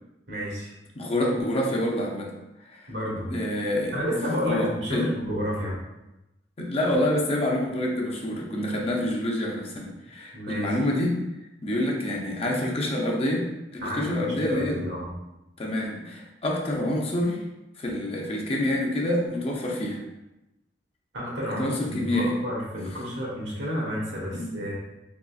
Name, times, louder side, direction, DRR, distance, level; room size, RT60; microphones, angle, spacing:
voice 1, 0.3-0.7 2.9-3.3 3.9-5.8 10.3-10.7 13.8-15.1 21.1-24.7, equal, 90° right, -5 dB, 1.3 m, -30 dB
voice 2, 1.0-2.3 2.7-2.9 3.3-4.0 4.4-5.1 6.6-11.2 11.6-14.8 15.6-17.4 17.8-20.0 21.6-22.4 24.3-24.6, left 1 dB, 35° left, -1 dB, 0.6 m, -27 dB
3.8 x 3.0 x 2.4 m, 0.95 s
head